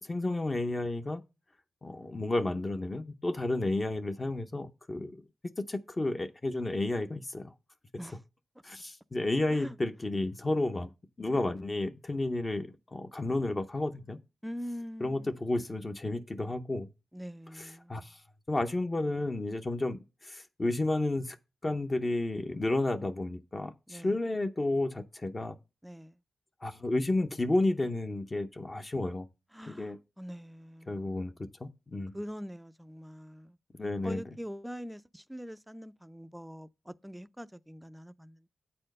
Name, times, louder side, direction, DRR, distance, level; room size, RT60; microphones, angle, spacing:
voice 1, 0.0-1.2 1.8-5.2 5.6-7.5 8.6-10.9 11.2-14.2 15.0-16.9 17.6-18.2 18.5-21.4 21.6-25.6 26.6-29.3 29.7-30.0 30.9-32.2 33.7-34.2, left 2 dB, 30° left, 0.7 m, -32 dB
voice 2, 14.4-15.4 17.1-18.1 23.9-24.2 25.8-26.2 29.5-31.3 32.1-33.6 34.0-38.5, equal, 5° right, 0.4 m, -44 dB
8.2 x 4.3 x 6.5 m
wide cardioid pair, 90°, 0 cm